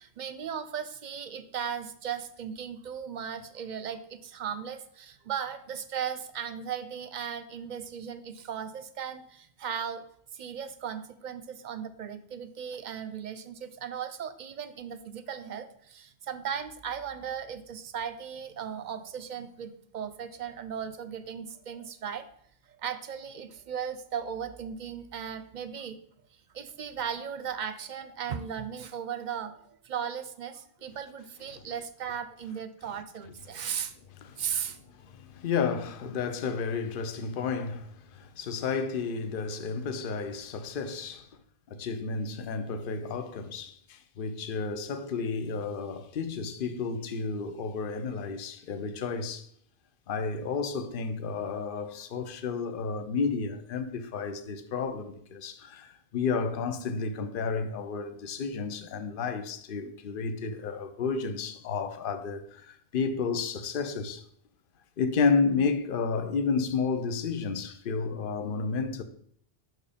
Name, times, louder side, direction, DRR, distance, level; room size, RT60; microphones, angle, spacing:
voice 1, 0.0-10.0 10.3-22.3 22.8-26.0 26.5-33.9 34.4-34.8, right 8 dB, 55° right, 0.6 m, -37 dB
voice 2, 34.2-34.5 34.9-41.3 41.7-49.5 50.1-64.3 65.0-69.0, left 5 dB, 60° left, 0.8 m, -31 dB
6.2 x 4.6 x 5.0 m
omnidirectional pair, 1.0 m